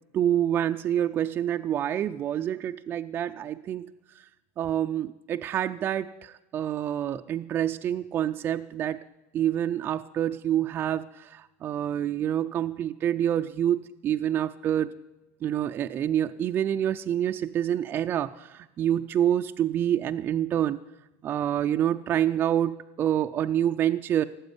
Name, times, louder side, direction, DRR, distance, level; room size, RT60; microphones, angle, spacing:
voice 1, 0.1-3.9 4.2-4.3 4.6-9.0 9.3-14.9 15.4-20.8 21.2-24.2, right 10 dB, 25° right, 7 dB, 0.4 m, -27 dB
17.5 x 8.0 x 9.5 m, 0.97 s
supercardioid pair, 155°, 8 cm